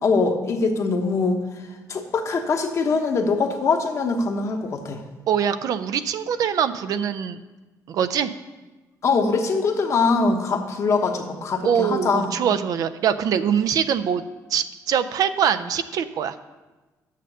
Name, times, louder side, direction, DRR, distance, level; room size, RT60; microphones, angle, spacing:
voice 1, 0.0-1.4 1.9-5.0 9.0-12.3, left 4 dB, 50° left, 4 dB, 1.1 m, -22 dB
voice 2, 5.3-7.4 7.9-8.3 11.6-14.2 14.5-16.4, right 8 dB, 70° right, 11 dB, 0.4 m, -23 dB
6.7 x 6.3 x 6.5 m, 1.2 s
cardioid pair, 105°, 7 cm